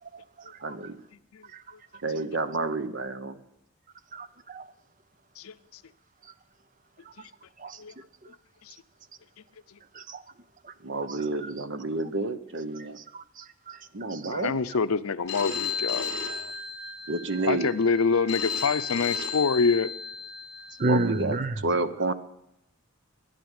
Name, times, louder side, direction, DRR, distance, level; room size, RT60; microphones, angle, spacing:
voice 1, 0.0-0.7 1.5-1.6 1.9-2.0 4.1-4.7 6.2-6.3 7.0-7.3 7.6-8.4 9.9-10.2 10.6-11.5 12.7-14.4 20.8-21.6, right 2 dB, 35° right, 0.6 m, -34 dB
voice 2, 0.6-1.0 2.0-3.4 10.8-13.0 13.9-14.6 17.1-17.7 20.8-22.1, right 3 dB, 55° right, 0.9 m, -30 dB
voice 3, 14.3-16.5 17.5-19.9, left 5 dB, 80° left, 0.6 m, -26 dB
Telephone, 15.3-21.2, left 5 dB, 50° left, 2.8 m, -34 dB
12.5 x 10.5 x 8.9 m
head